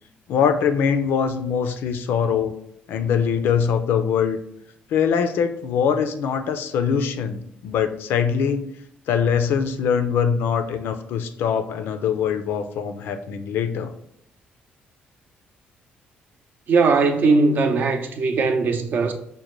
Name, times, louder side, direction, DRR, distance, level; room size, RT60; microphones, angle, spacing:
voice 1, 0.3-2.6 2.9-4.4 4.9-8.7 9.1-13.9, left 7 dB, 80° left, 0.4 m, -22 dB
voice 2, 16.7-19.1, right 4 dB, 60° right, 0.5 m, -19 dB
5.2 x 2.1 x 3.0 m
cardioid pair, 95°, 4 cm